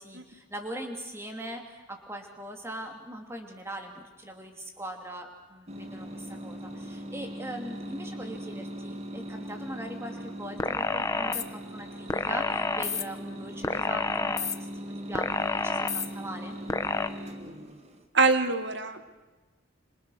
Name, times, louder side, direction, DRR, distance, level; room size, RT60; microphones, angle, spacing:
voice 1, 0.0-16.6, right 1 dB, 15° right, 3 dB, 3.0 m, -41 dB
sound 1, 5.7-18.0, equal, 30° right, 2.1 m, -40 dB
sound 2, 10.6-11.4 12.1-13.0 13.6-14.5 15.1-16.1 16.7-17.1, left 3 dB, 15° left, 0.8 m, -29 dB
voice 2, 18.1-19.1, right 4 dB, 55° right, 9 dB, 1.9 m, -24 dB
26.5 x 26.5 x 6.6 m, 1.2 s
head